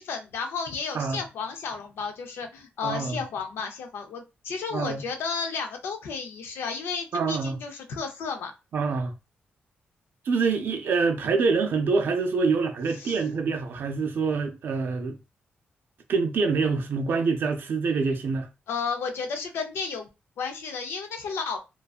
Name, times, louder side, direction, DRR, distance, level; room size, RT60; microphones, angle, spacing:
voice 1, 0.0-8.5 12.9-13.2 18.7-20.1 20.4-21.6, left 5 dB, 90° left, 0.5 m, -33 dB
voice 2, 2.8-3.2 4.7-5.0 7.1-7.5 8.7-9.1 10.3-15.2 16.1-18.5, right 4 dB, 65° right, 0.4 m, -25 dB
2.5 x 2.2 x 2.3 m
cardioid pair, 90°, 4 cm